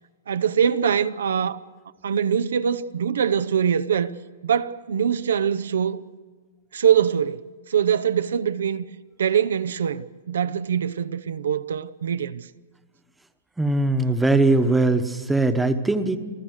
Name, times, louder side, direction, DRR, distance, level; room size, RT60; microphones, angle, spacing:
voice 1, 0.3-1.6 2.0-4.1 4.4-6.0 6.7-8.8 9.2-12.5, right 8 dB, 90° right, 0.7 m, -23 dB
voice 2, 13.6-16.2, right 2 dB, 5° right, 1.0 m, -20 dB
28.0 x 14.5 x 6.5 m
hypercardioid pair, 155°, 0 cm